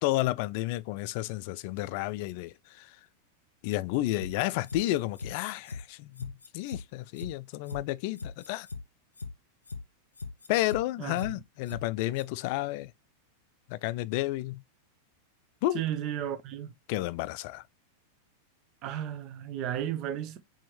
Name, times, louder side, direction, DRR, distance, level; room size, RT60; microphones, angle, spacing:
voice 1, 0.0-2.9 3.6-8.7 10.5-12.9 13.7-14.6 15.6-15.8 16.9-17.6, left 16 dB, 45° left, 0.3 m, -31 dB
sound 1, 4.2-4.8 5.2-5.3 5.7-5.8 6.2-6.8 7.2-7.3 7.7-7.8 8.2-8.8 9.2-9.3 9.7-9.8 10.2-10.8 11.2-11.3 11.7-11.8 12.2-12.3, left 4 dB, 80° left, 0.7 m, -39 dB
voice 2, 11.0-11.4 15.7-16.7 18.8-20.4, right 10 dB, 40° right, 0.6 m, -34 dB
4.3 x 3.4 x 3.1 m
figure-of-eight pair, 90°, 0 cm